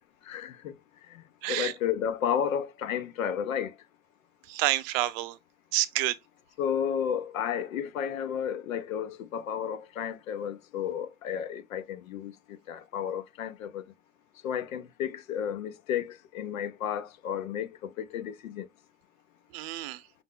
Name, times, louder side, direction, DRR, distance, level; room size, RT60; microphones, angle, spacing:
voice 1, 0.2-0.8 1.1-1.2 1.5-3.7 6.6-13.8 14.4-18.7, left 8 dB, 85° left, 0.9 m, -32 dB
voice 2, 1.4-1.7 4.5-5.4 5.7-6.2 19.5-20.0, right 16 dB, 45° right, 0.7 m, -28 dB
5.4 x 2.1 x 3.7 m
hypercardioid pair, 120°, 40 cm